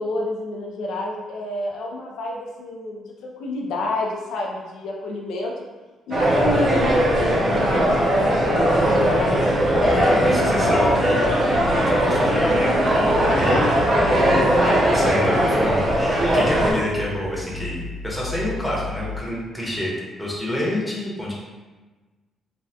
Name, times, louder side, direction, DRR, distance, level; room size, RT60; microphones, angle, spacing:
voice 1, 0.0-5.5 6.1-11.0 13.2-13.7 14.3-15.8 18.4-18.5, left 2 dB, 85° left, -1 dB, 0.4 m, -29 dB
sound 1, 6.1-16.7, equal, 45° right, 0.6 m, -19 dB
sound 2, 8.7-19.2, left 2 dB, 50° left, 0.9 m, -36 dB
voice 2, 9.9-12.7 12.9-13.6 14.3-21.3, left 1 dB, 5° left, -5 dB, 0.8 m, -28 dB
3.2 x 2.2 x 2.7 m, 1.3 s
cardioid pair, 125°, 0 cm